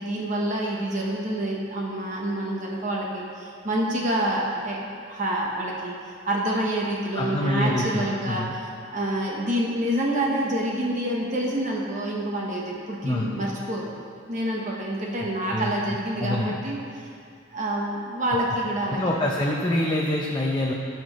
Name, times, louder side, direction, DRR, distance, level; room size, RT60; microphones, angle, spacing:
voice 1, 0.0-4.8 5.1-6.0 6.3-8.5 8.9-13.9 14.3-17.1 17.5-19.1, right 1 dB, 35° right, -3 dB, 1.0 m, -27 dB
voice 2, 7.1-8.5 13.0-13.3 15.5-15.7 16.2-16.5 18.9-20.7, left 1 dB, 20° left, -2 dB, 0.6 m, -25 dB
17.5 x 5.9 x 3.1 m, 2.3 s
head